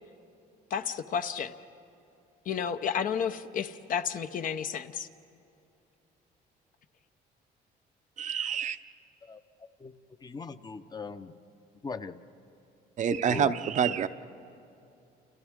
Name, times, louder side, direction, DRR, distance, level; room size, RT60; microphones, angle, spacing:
voice 1, 0.7-1.5 2.5-5.1, left 7 dB, 55° left, 9 dB, 0.8 m, -31 dB
voice 2, 8.2-8.8 13.0-14.1, right 8 dB, 45° right, 10 dB, 0.7 m, -27 dB
voice 3, 10.2-11.3 11.8-12.2 13.3-13.5, left 4 dB, 25° left, 10 dB, 0.8 m, -39 dB
30.0 x 29.0 x 3.7 m, 2.7 s
cardioid pair, 110°, 17 cm